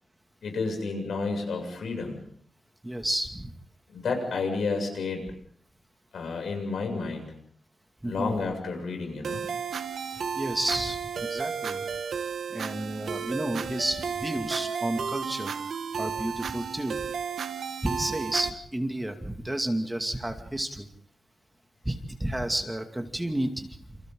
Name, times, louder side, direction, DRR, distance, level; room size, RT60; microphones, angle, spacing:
voice 1, 0.4-2.2 3.9-5.3 6.1-7.3 8.0-9.5, left 4 dB, 85° left, 4 dB, 7.2 m, -31 dB
voice 2, 2.8-3.5 8.0-8.3 10.3-11.9 12.5-15.5 16.0-17.0 17.8-20.9 21.8-24.0, right 1 dB, 10° right, 4 dB, 2.3 m, -31 dB
sound 1, 9.2-18.5, right 6 dB, 75° right, 1.4 m, -33 dB
29.0 x 29.0 x 3.9 m, 0.62 s
wide cardioid pair, 130°, 0 cm